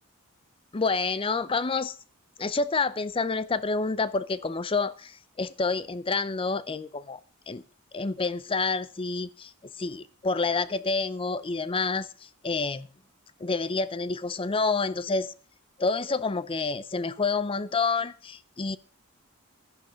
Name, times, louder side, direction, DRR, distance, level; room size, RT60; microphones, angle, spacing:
voice 1, 0.7-1.9 2.4-7.2 7.5-7.6 7.9-9.5 9.8-12.9 13.4-15.3 15.8-18.8, left 4 dB, 25° left, 0.5 m, -28 dB
12.0 x 11.0 x 5.0 m
head